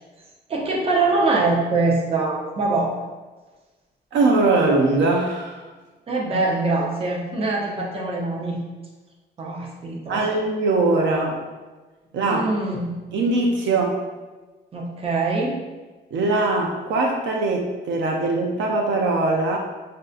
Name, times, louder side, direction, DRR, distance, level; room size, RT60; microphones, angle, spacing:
voice 1, 0.5-2.9 6.1-8.6 9.4-10.2 12.3-12.9 14.7-15.6, right 3 dB, 30° right, -2 dB, 0.7 m, -23 dB
voice 2, 4.1-5.6 10.1-11.4 12.1-12.5 13.1-14.0 16.1-19.6, right 3 dB, 80° right, 1 dB, 0.5 m, -21 dB
5.4 x 2.6 x 2.4 m, 1.2 s
cardioid pair, 150°, 19 cm